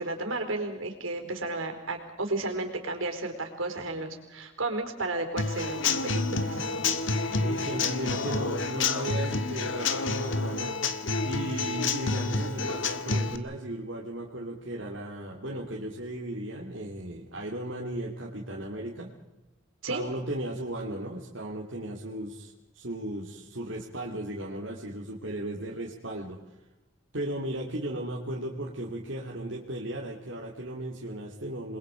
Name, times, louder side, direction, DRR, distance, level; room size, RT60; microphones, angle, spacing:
voice 1, 0.0-6.6 19.8-20.0, right 2 dB, 85° right, 5 dB, 4.4 m, -33 dB
Human voice / Acoustic guitar / Drum, 5.4-13.4, left 4 dB, 70° left, 1.7 m, -29 dB
voice 2, 7.4-10.8 11.2-19.1 19.8-26.4 27.1-31.8, right 1 dB, 70° right, -2 dB, 2.6 m, -36 dB
29.0 x 22.0 x 5.1 m, 1.0 s
head